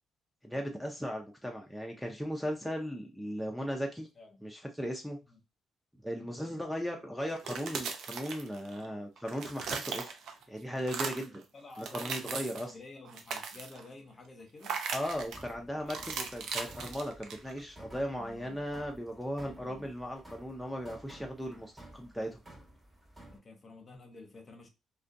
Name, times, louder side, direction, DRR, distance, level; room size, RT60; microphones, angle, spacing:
voice 1, 0.4-4.1 4.4-5.2 6.0-10.1 10.5-11.4 11.8-12.8 14.9-22.4, equal, ahead, 0.4 m, -37 dB
sound 1, 7.3-8.9 9.2-10.4 10.8-11.3 11.7-12.7 13.0-13.9 14.6-15.4 15.9-17.6, right 5 dB, 75° right, 0.4 m, -38 dB
voice 2, 11.2-14.8 18.2-18.6 19.6-19.9 23.3-24.7, left 3 dB, 35° left, 0.7 m, -51 dB
sound 2, 15.0-23.4, right 1 dB, 20° right, 0.9 m, -54 dB
2.4 x 2.2 x 2.5 m
cardioid pair, 90°, 0 cm